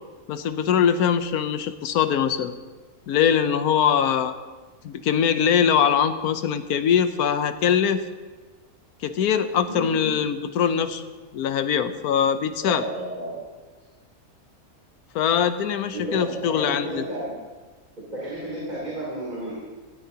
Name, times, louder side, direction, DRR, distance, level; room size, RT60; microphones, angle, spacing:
voice 1, 0.3-2.5 3.1-4.3 4.8-8.0 9.0-11.0 11.3-12.8 15.1-17.0, left 8 dB, 85° left, 11 dB, 1.2 m, -22 dB
voice 2, 9.7-10.1 12.6-13.3 15.9-16.2 16.5-17.2 18.1-19.5, right 1 dB, 30° right, -7 dB, 3.3 m, -31 dB
18.0 x 13.0 x 2.9 m, 1.3 s
omnidirectional pair, 1.6 m